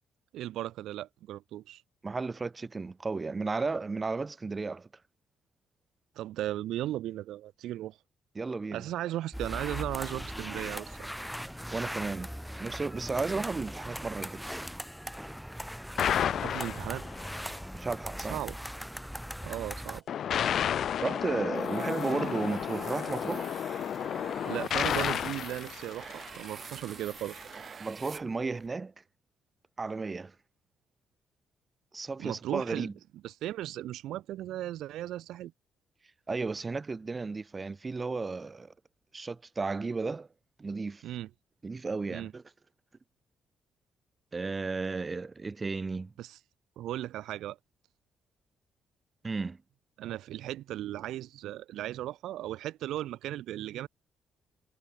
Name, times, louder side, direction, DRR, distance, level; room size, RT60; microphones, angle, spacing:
voice 1, 0.3-1.8 6.1-8.0 8.7-11.1 16.4-17.1 18.3-18.6 19.4-20.0 24.4-27.4 32.2-32.9 33.2-35.5 41.0-41.3 42.1-42.3 46.2-46.4 46.8-47.6 50.0-53.9, right 13 dB, 85° right, 3.3 m, -36 dB
voice 2, 2.0-4.9 8.3-8.9 11.7-12.3 12.6-14.4 17.7-18.4 21.0-23.6 27.8-28.9 29.8-30.3 31.9-32.9 36.3-38.7 39.1-40.3 40.6-41.0 41.6-42.4 44.3-46.1 49.2-49.6, right 4 dB, 30° right, 0.9 m, -34 dB
sound 1, 9.3-20.0, equal, ahead, 4.8 m, -39 dB
sound 2, 16.0-17.4 20.1-26.6, left 9 dB, 65° left, 2.1 m, -31 dB
sound 3, 21.5-28.7, right 6 dB, 45° right, 2.0 m, -47 dB
cardioid pair, 90°, 0 cm